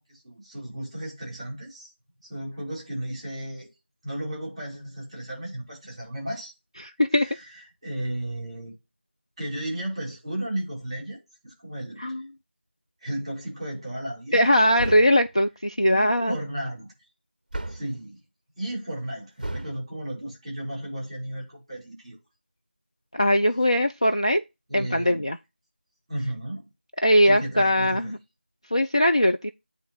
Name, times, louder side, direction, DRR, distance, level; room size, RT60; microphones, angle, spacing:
voice 1, 0.1-1.9 2.2-3.7 4.0-6.5 7.1-8.7 9.4-11.2 11.4-12.1 13.0-14.5 15.8-16.9 17.7-18.2 18.6-22.2 24.7-25.2 26.1-26.7 27.2-28.2, right 1 dB, 5° right, 4.7 m, -34 dB
voice 2, 6.8-7.3 12.0-12.2 14.3-16.4 23.1-24.4 24.7-25.4 27.0-28.2 28.7-29.5, equal, 30° left, 0.3 m, -21 dB
sound 1, 14.8-15.3 17.5-18.0 19.4-19.8, right 1 dB, 45° right, 0.6 m, -34 dB
8.7 x 3.5 x 6.1 m
figure-of-eight pair, 175°, 6 cm